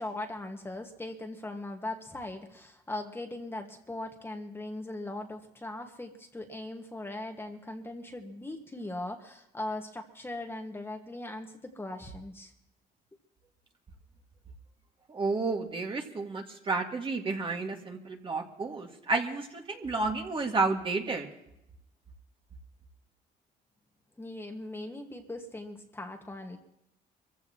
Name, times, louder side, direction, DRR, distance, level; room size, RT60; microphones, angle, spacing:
voice 1, 0.0-12.5 24.2-26.6, left 2 dB, 15° left, 3 dB, 1.6 m, -39 dB
voice 2, 15.1-21.3, right 3 dB, 30° right, 2 dB, 2.0 m, -31 dB
24.0 x 15.0 x 3.0 m, 0.82 s
cardioid pair, 110°, 17 cm